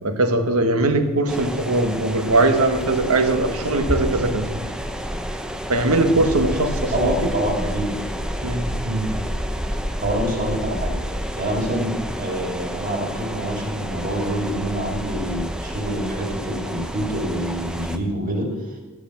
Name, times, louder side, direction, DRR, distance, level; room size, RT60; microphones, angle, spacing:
voice 1, 0.0-4.5 5.7-7.3 8.4-8.8, right 2 dB, 85° right, 7 dB, 1.3 m, -20 dB
sound 1, 1.3-18.0, equal, 5° right, 0.5 m, -29 dB
voice 2, 6.9-7.9 8.8-9.1 9.9-18.8, right 1 dB, 40° right, 1 dB, 2.4 m, -26 dB
13.0 x 6.2 x 7.4 m, 1.2 s
head